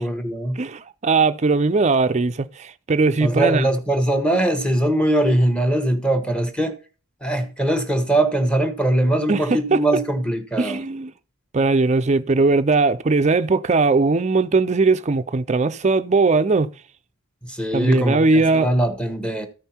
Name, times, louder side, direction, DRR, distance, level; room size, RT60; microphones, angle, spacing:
voice 1, 0.0-0.6 3.2-6.7 7.2-10.8 17.4-19.5, right 1 dB, 5° left, 1.2 m, -21 dB
voice 2, 0.6-3.7 9.3-9.8 10.6-11.1 11.5-16.7 17.7-18.7, right 3 dB, 35° right, 0.5 m, -19 dB
13.5 x 5.5 x 4.4 m
head